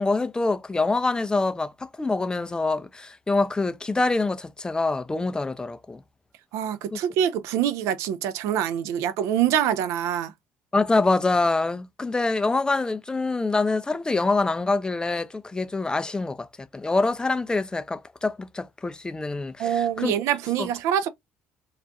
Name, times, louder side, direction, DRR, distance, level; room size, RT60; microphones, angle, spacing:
voice 1, 0.0-6.0 6.9-7.0 10.7-16.5 16.7-20.1 20.6-20.7, left 3 dB, 15° left, 0.3 m, -25 dB
voice 2, 6.5-10.3 19.6-21.1, right 10 dB, 70° right, 0.3 m, -25 dB
2.3 x 2.2 x 2.5 m
supercardioid pair, 75°, 5 cm